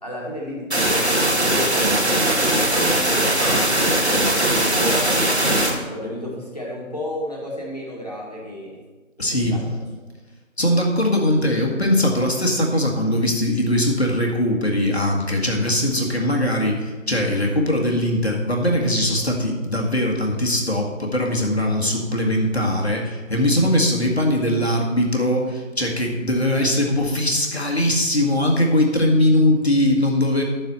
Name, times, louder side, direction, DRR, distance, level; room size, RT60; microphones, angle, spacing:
voice 1, 0.0-5.0 5.9-8.8 9.5-9.8, left 1 dB, 30° left, -3 dB, 2.0 m, -32 dB
sound 1, 0.7-5.7, right 1 dB, 50° right, 1.8 m, -19 dB
voice 2, 9.2-9.6 10.6-30.4, left 1 dB, 50° left, 0 dB, 1.9 m, -20 dB
11.5 x 7.8 x 4.3 m, 1.3 s
figure-of-eight pair, 175°, 40 cm